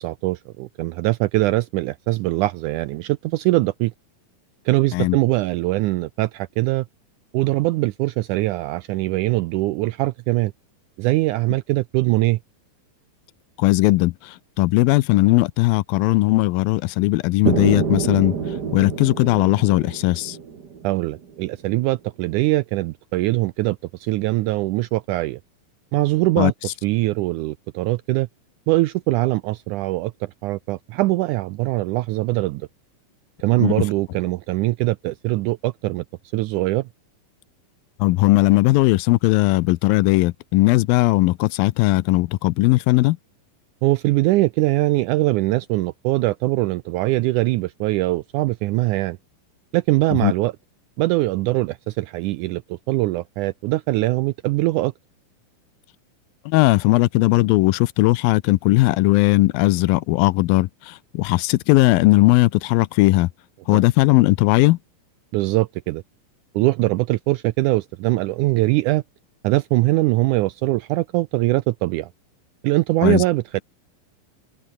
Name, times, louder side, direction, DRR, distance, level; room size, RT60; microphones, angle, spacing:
voice 1, 0.0-3.9 4.7-6.9 7.3-10.5 11.0-12.4 20.8-25.4 25.9-28.3 28.7-32.7 33.4-36.0 36.3-36.9 43.8-49.2 49.7-50.5 51.0-54.9 63.7-63.9 65.3-66.0 66.6-69.0 69.4-72.1 72.6-73.6, right 19 dB, 85° right, 1.8 m, -22 dB
voice 2, 13.6-14.1 14.6-18.4 18.7-20.4 26.4-26.5 33.6-33.8 38.0-43.2 50.2-50.3 56.5-63.3 63.7-64.8 73.0-73.2, left 19 dB, 85° left, 2.5 m, -18 dB
sound 1, 17.5-21.3, right 6 dB, 35° right, 1.8 m, -27 dB
open air
omnidirectional pair, 4.1 m